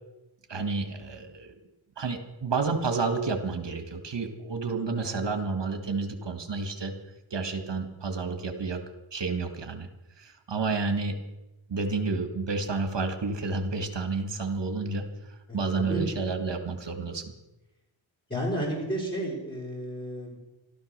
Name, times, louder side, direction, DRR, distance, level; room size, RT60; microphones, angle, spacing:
voice 1, 0.5-1.5 2.0-6.9 7.3-8.8 9.1-9.9 10.2-11.2 11.7-15.0 15.5-17.3, right 4 dB, 60° right, 7 dB, 1.8 m, -30 dB
voice 2, 15.5-16.0 18.3-20.4, equal, 20° left, -6 dB, 5.3 m, -32 dB
13.5 x 12.5 x 6.7 m, 0.97 s
wide cardioid pair, 85°, 48 cm